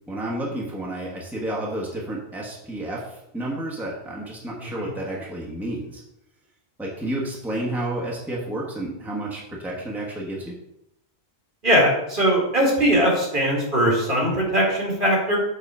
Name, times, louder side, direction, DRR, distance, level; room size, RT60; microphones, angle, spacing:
voice 1, 0.1-6.0 6.8-10.5, right 1 dB, ahead, -4 dB, 1.3 m, -31 dB
voice 2, 11.6-15.4, equal, 50° right, -2 dB, 2.1 m, -20 dB
7.0 x 4.0 x 5.5 m, 0.82 s
omnidirectional pair, 1.1 m